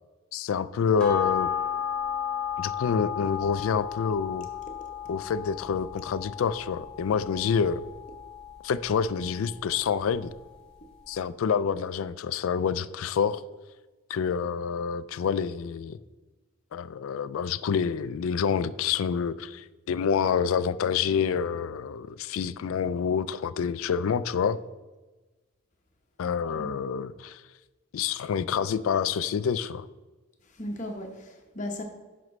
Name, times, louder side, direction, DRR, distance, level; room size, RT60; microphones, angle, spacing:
voice 1, 0.3-1.5 2.6-4.5 5.1-7.8 8.6-10.3 11.1-13.4 14.1-16.0 16.7-24.6 26.2-27.4 27.9-29.9, left 6 dB, 80° left, 16 dB, 0.3 m, -27 dB
sound 1, 1.0-9.7 10.1-10.2, left 8 dB, 5° left, 2.1 m, -34 dB
voice 2, 30.5-31.8, left 1 dB, 35° left, 3 dB, 0.9 m, -36 dB
11.0 x 5.2 x 3.2 m, 1.2 s
head